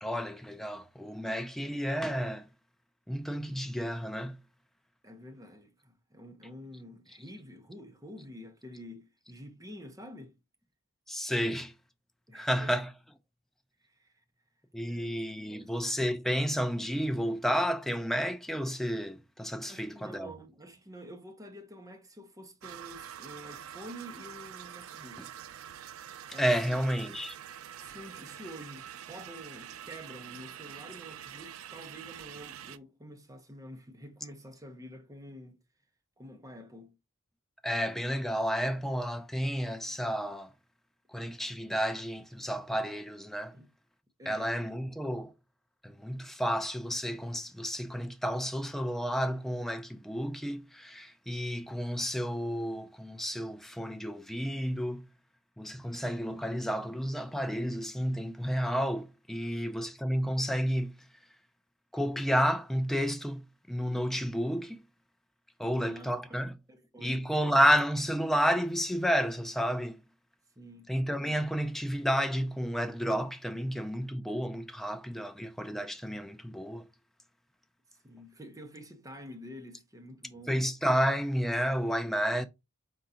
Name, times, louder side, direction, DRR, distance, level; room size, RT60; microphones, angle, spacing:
voice 1, 0.0-2.5 3.1-4.4 11.1-11.7 12.3-12.9 14.7-20.3 26.4-27.4 37.6-40.5 41.1-43.5 44.3-45.3 45.8-55.1 55.6-61.0 61.9-64.8 65.6-66.6 67.0-70.0 70.9-76.8 80.5-82.5, equal, ahead, 0.4 m, -31 dB
voice 2, 5.0-10.4 12.3-12.7 13.8-14.2 14.9-15.2 15.5-15.7 19.7-25.4 26.3-26.8 27.8-35.6 36.2-37.0 43.5-43.7 44.2-44.6 59.5-59.6 65.6-66.4 66.7-67.3 70.6-70.9 77.9-80.7, equal, 15° right, 0.9 m, -48 dB
sound 1, 22.6-32.8, right 10 dB, 90° right, 0.4 m, -46 dB
4.6 x 3.7 x 2.8 m
head